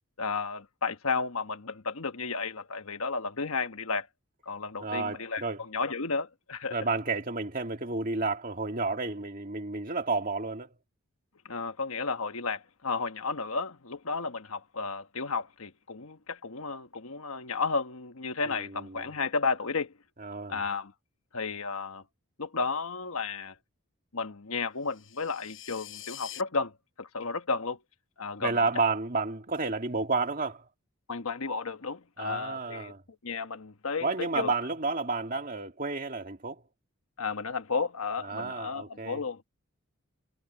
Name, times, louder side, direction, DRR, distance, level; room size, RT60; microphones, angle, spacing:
voice 1, 0.2-4.1 4.5-6.8 11.4-19.9 20.5-20.9 21.3-22.0 22.4-23.5 24.1-27.8 28.2-28.6 31.1-32.9 33.2-34.5 37.2-39.4, left 4 dB, 75° left, 1.3 m, -33 dB
voice 2, 4.8-5.6 6.7-10.7 18.5-19.1 20.2-20.6 28.4-30.6 32.2-33.0 34.0-36.6 38.2-39.2, right 3 dB, 40° right, 2.2 m, -31 dB
sound 1, 24.8-26.4, left 12 dB, 60° left, 4.9 m, -45 dB
head